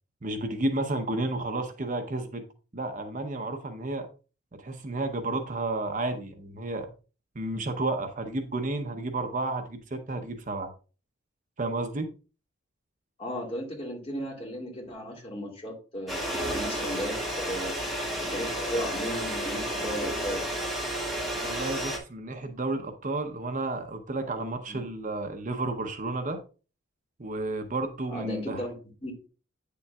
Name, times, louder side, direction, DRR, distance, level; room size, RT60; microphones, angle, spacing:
voice 1, 0.2-2.4 2.7-4.1 4.6-6.9 7.3-10.7 11.6-12.1 21.4-26.4 27.2-28.7, right 2 dB, 40° right, 0.8 m, -31 dB
voice 2, 13.2-17.2 17.5-17.7 18.2-20.4 24.7-24.9 28.1-29.3, equal, 30° left, 2.0 m, -35 dB
sound 1, 16.1-22.0, right 1 dB, ahead, 1.6 m, -31 dB
8.9 x 6.9 x 2.3 m
head